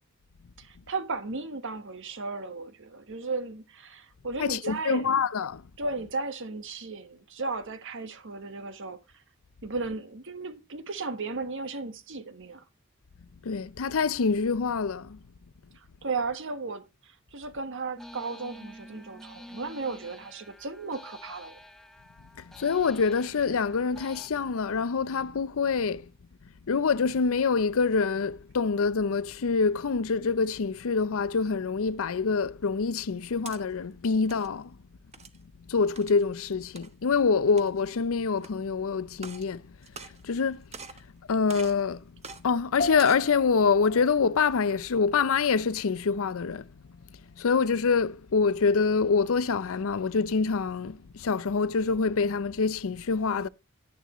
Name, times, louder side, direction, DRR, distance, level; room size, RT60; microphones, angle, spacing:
voice 1, 0.6-5.1 5.8-9.2 9.6-12.6 15.7-21.6, right 3 dB, 65° right, 1.4 m, -35 dB
voice 2, 4.4-5.6 13.4-15.2 22.4-26.1 26.7-34.8 35.7-39.7 40.0-40.7 41.3-42.0 42.4-46.7 47.4-53.5, left 5 dB, 70° left, 0.6 m, -26 dB
sound 1, 18.0-24.3, left 1 dB, ahead, 1.1 m, -48 dB
sound 2, 33.1-33.6 34.1-34.5 35.1-35.4 36.0-36.2 36.8-36.9 37.5-37.9 38.4-38.5 39.1-39.5 39.8-40.4 40.7-41.1 41.5-41.8 42.2-42.4 42.9-43.3, right 5 dB, 30° right, 1.1 m, -44 dB
sound 3, 42.8-52.4, left 2 dB, 40° left, 1.3 m, -43 dB
11.0 x 10.5 x 3.1 m
head